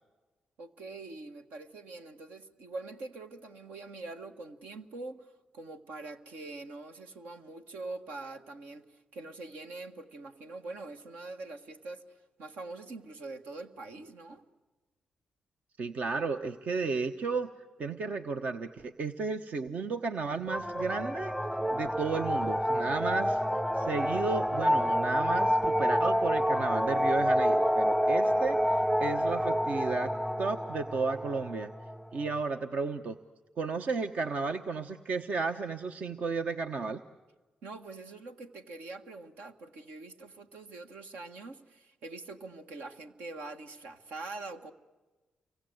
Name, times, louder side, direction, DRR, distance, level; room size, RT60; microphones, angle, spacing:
voice 1, 0.6-14.4 37.6-44.7, right 3 dB, 80° right, 5 dB, 1.7 m, -44 dB
voice 2, 15.8-17.5 17.8-21.3 21.7-23.4 23.7-31.7 32.1-33.2 33.6-37.0, right 4 dB, 60° right, 7 dB, 1.1 m, -33 dB
sound 1, 20.5-32.3, equal, 5° right, 0.9 m, -28 dB
29.5 x 24.5 x 8.0 m, 1.2 s
hypercardioid pair, 45°, 3 cm